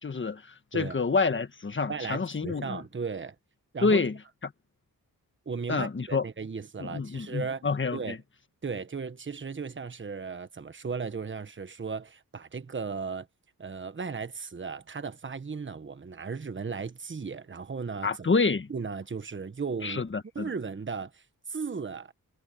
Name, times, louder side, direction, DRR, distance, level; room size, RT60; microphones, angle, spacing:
voice 1, 0.0-2.8 3.8-4.2 4.4-4.5 5.7-6.2 6.8-8.2 18.0-18.7 19.8-20.5, left 4 dB, 35° left, 1.5 m, -28 dB
voice 2, 1.9-3.3 3.7-4.0 5.4-7.6 7.9-8.2 8.6-13.3 13.6-18.3 18.7-20.0 20.3-22.1, right 5 dB, 35° right, 1.3 m, -36 dB
wide cardioid pair, 95°, 36 cm